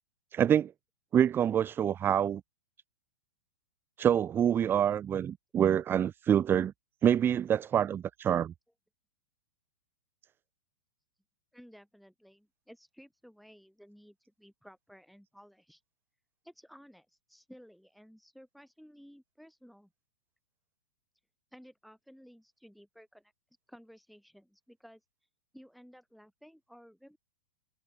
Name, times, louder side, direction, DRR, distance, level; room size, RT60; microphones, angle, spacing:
voice 1, 0.3-0.7 1.1-2.4 4.0-6.7 7.0-8.5, right 9 dB, 20° right, 0.8 m, -26 dB
voice 2, 11.5-15.8 16.4-19.9 21.5-23.3 23.7-25.0 25.5-27.2, equal, ahead, 6.3 m, -55 dB
hypercardioid pair, 115°, 10 cm